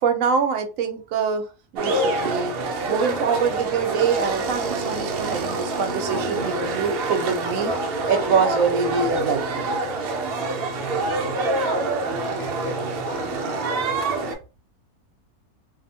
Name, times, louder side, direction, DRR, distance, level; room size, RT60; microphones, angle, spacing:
voice 1, 0.0-1.4 1.7-2.5 2.9-7.7 8.1-9.8, right 5 dB, 70° right, 0.9 m, -24 dB
sound 1, 1.8-14.3, right 2 dB, 85° right, 0.5 m, -26 dB
voice 2, 10.5-11.7 12.1-13.9, left 2 dB, 70° left, 1.1 m, -40 dB
2.6 x 2.1 x 2.7 m
omnidirectional pair, 1.6 m